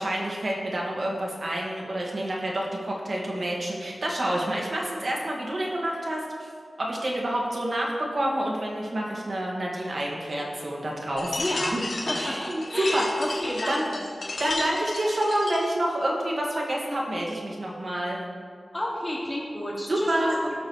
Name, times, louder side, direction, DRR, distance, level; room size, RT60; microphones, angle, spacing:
voice 1, 0.0-6.5 6.8-11.5 11.7-11.8 12.1-13.1 13.7-13.8 14.4-18.2 19.9-20.3, right 1 dB, 50° right, -2 dB, 1.9 m, -28 dB
sound 1, 11.2-15.7, left 2 dB, 80° left, 1.6 m, -33 dB
voice 2, 11.4-11.8 12.1-14.0 18.7-20.5, left 1 dB, 20° left, -8 dB, 1.8 m, -31 dB
16.5 x 6.6 x 3.2 m, 2.2 s
wide cardioid pair, 115°, 0 cm